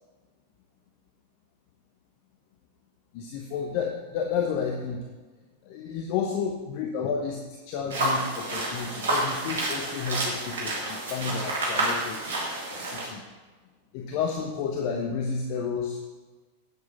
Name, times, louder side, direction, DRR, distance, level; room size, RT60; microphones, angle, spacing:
voice 1, 3.1-5.0 5.6-12.4 12.7-13.2 13.9-16.0, left 6 dB, 45° left, 2 dB, 1.0 m, -31 dB
sound 1, 7.9-13.1, right 2 dB, 60° right, 3.0 m, -29 dB
9.5 x 7.9 x 5.5 m, 1.3 s
figure-of-eight pair, 90°, 0 cm